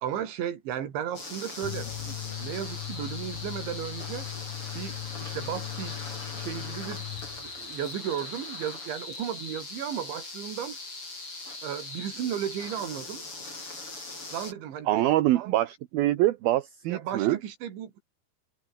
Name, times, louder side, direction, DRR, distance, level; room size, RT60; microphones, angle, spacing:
voice 1, 0.0-4.3 4.8-6.0 6.4-7.1 7.4-10.8 11.6-13.2 14.3-15.0 16.9-18.0, right 10 dB, 85° right, 5.1 m, -35 dB
sound 1, 1.1-14.5, left 3 dB, 30° left, 8.2 m, -40 dB
sound 2, 1.6-7.7, left 14 dB, 70° left, 2.5 m, -39 dB
voice 2, 14.9-17.4, right 15 dB, 70° right, 2.6 m, -24 dB
omnidirectional pair, 5.1 m